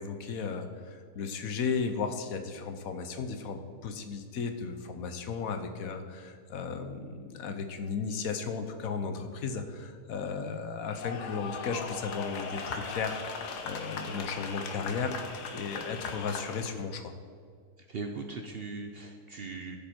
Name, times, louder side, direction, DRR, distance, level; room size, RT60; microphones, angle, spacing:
voice 1, 0.0-15.2 15.5-17.1, left 5 dB, 65° left, 7 dB, 1.2 m, -35 dB
sound 1, 10.9-16.8, left 5 dB, 85° left, 1.4 m, -39 dB
voice 2, 17.9-19.8, right 3 dB, 60° right, 4 dB, 0.6 m, -39 dB
14.0 x 5.4 x 4.4 m, 2.1 s
omnidirectional pair, 1.7 m